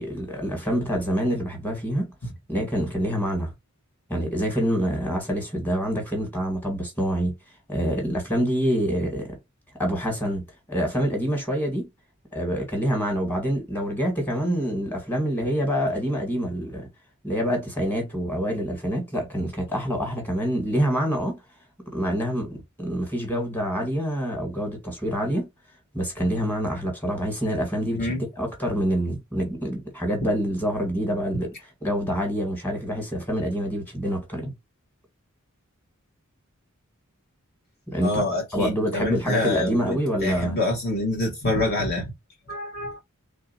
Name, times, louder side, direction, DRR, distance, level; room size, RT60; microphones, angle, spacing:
voice 1, 0.0-2.1 2.5-3.5 4.1-7.3 7.7-9.4 9.8-10.4 10.7-11.9 12.3-16.9 17.2-21.4 21.9-22.5 22.8-25.5 25.9-28.1 28.4-31.5 31.8-34.5 37.9-38.2 38.5-40.6, equal, 10° left, 1.6 m, -26 dB
voice 2, 38.0-42.1 42.5-43.0, left 2 dB, 50° left, 1.1 m, -26 dB
3.2 x 2.7 x 4.2 m
head